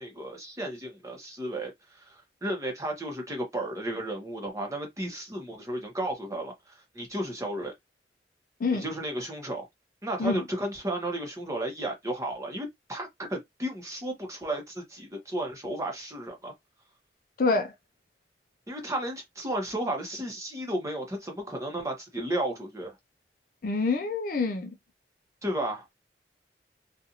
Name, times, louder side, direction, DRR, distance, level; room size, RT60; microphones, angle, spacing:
voice 1, 0.0-7.7 8.7-9.6 10.0-16.5 18.7-22.9 25.4-25.8, right 1 dB, 20° right, 0.9 m, -33 dB
voice 2, 23.6-24.7, left 3 dB, 50° left, 0.5 m, -26 dB
2.5 x 2.5 x 2.8 m
head